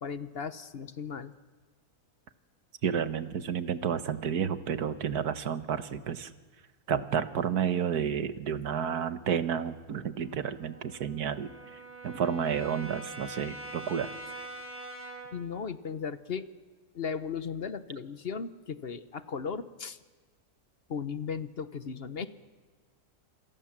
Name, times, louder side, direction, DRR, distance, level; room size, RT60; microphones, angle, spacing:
voice 1, 0.0-1.3 8.6-8.8 15.3-16.5 16.9-20.0 20.9-22.3, left 6 dB, 45° left, 13 dB, 1.0 m, -36 dB
voice 2, 2.8-6.3 6.9-11.5 12.0-14.1, right 8 dB, 75° right, 12 dB, 1.7 m, -31 dB
Brass instrument, 9.9-15.4, right 1 dB, 5° right, 6.0 m, -44 dB
27.5 x 26.5 x 7.4 m, 1.4 s
omnidirectional pair, 1.7 m